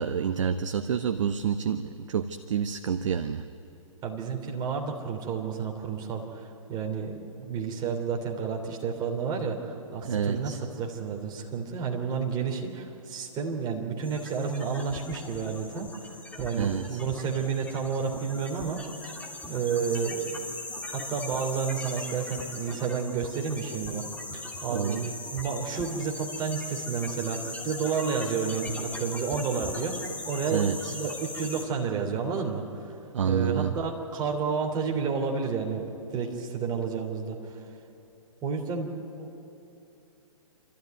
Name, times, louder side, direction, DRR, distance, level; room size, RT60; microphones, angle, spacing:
voice 1, 0.0-3.4 10.0-10.6 16.5-17.0 24.7-25.1 30.5-30.9 33.1-33.7, right 7 dB, 60° right, 9 dB, 0.9 m, -28 dB
voice 2, 3.7-19.1 19.5-20.5 20.9-24.0 24.3-30.6 30.9-32.9 33.2-37.6 38.4-38.9 39.2-39.3, right 6 dB, 25° right, 1 dB, 3.1 m, -31 dB
sound 1, 14.0-31.6, left 2 dB, 10° left, 2.2 m, -39 dB
27.0 x 13.5 x 9.4 m, 2.9 s
figure-of-eight pair, 125°, 17 cm